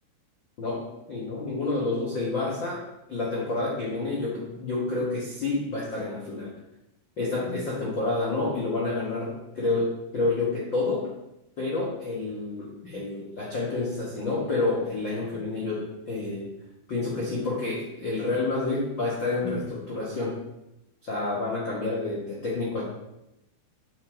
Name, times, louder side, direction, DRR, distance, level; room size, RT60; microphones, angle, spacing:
voice 1, 1.1-2.8 3.1-6.5 7.2-11.1 11.6-16.5 16.9-20.4 21.0-22.8, left 3 dB, 85° left, -4 dB, 1.0 m, -29 dB
8.0 x 7.5 x 3.8 m, 0.89 s
omnidirectional pair, 4.7 m